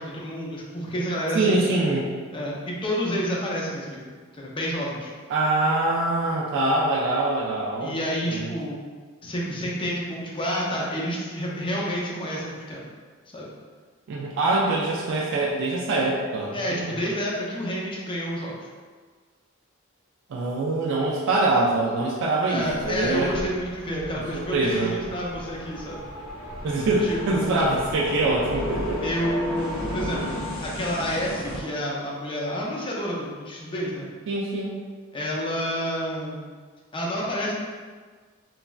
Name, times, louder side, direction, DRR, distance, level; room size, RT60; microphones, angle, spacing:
voice 1, 0.0-1.6 2.3-4.0 4.4-5.1 7.8-8.8 9.2-12.8 13.3-13.5 16.5-18.7 22.5-26.0 27.0-27.6 29.0-34.1 35.1-36.4 36.9-37.5, equal, 25° left, -3 dB, 0.5 m, -29 dB
voice 2, 1.3-2.1 5.3-8.0 8.3-8.5 14.1-16.9 20.3-23.3 24.3-24.9 26.6-29.0 30.0-30.3 34.3-34.8, right 2 dB, 60° right, -4 dB, 0.3 m, -24 dB
sound 1, 22.6-31.6, left 1 dB, 85° left, 0.7 m, -35 dB
3.0 x 2.4 x 2.2 m, 1.5 s
head